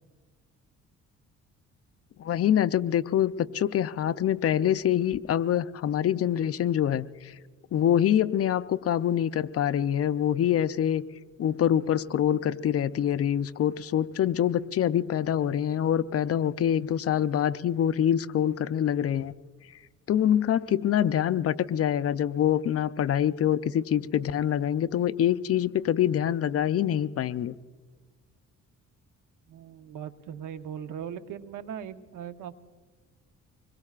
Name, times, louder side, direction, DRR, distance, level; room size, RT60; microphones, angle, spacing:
voice 1, 2.2-7.3 7.7-11.0 11.4-19.3 20.1-27.6, left 10 dB, 50° left, 14 dB, 0.6 m, -25 dB
voice 2, 29.5-32.5, right 9 dB, 80° right, 10 dB, 1.0 m, -39 dB
25.5 x 22.0 x 2.5 m, 1.4 s
cardioid pair, 90°, 30 cm